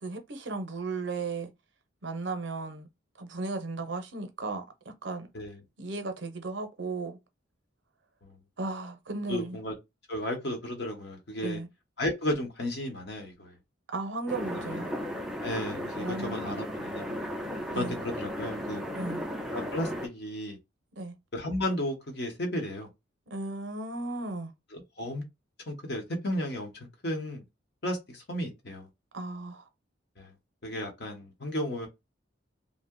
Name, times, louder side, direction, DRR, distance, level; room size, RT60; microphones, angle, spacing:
voice 1, 0.0-1.5 2.0-2.9 3.2-5.3 5.8-7.2 8.6-9.6 11.4-11.7 13.9-14.9 16.0-16.6 17.7-18.0 19.0-19.3 21.0-21.2 23.3-24.5 29.1-29.7, right 3 dB, 60° right, 0.6 m, -35 dB
voice 2, 9.3-9.7 10.1-11.6 12.0-13.5 14.5-14.8 15.4-17.2 17.8-18.8 19.5-20.6 21.3-22.9 24.7-25.2 25.7-26.7 27.0-27.4 27.8-28.9 30.2-30.3 30.6-31.9, left 1 dB, 55° left, 0.9 m, -34 dB
sound 1, 14.3-20.1, equal, ahead, 0.3 m, -35 dB
2.8 x 2.1 x 3.6 m
head